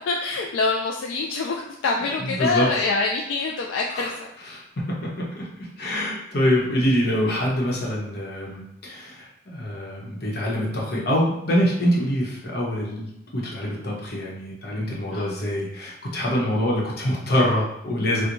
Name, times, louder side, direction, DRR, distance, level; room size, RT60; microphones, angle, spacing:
voice 1, 0.1-4.3 15.1-15.3, left 3 dB, 85° left, 0 dB, 0.3 m, -25 dB
voice 2, 2.2-2.7 3.9-4.1 4.4-18.3, equal, 60° left, -3 dB, 0.9 m, -25 dB
4.5 x 2.2 x 2.6 m, 0.83 s
head